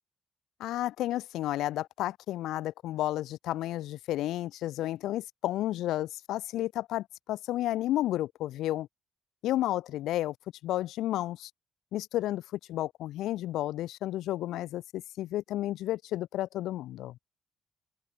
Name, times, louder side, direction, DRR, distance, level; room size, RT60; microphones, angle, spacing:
voice 1, 0.6-8.9 9.4-10.3 10.6-11.5 11.9-12.4 12.7-17.2, left 14 dB, 85° left, 4.6 m, -32 dB
open air
cardioid pair, 90°, 0 cm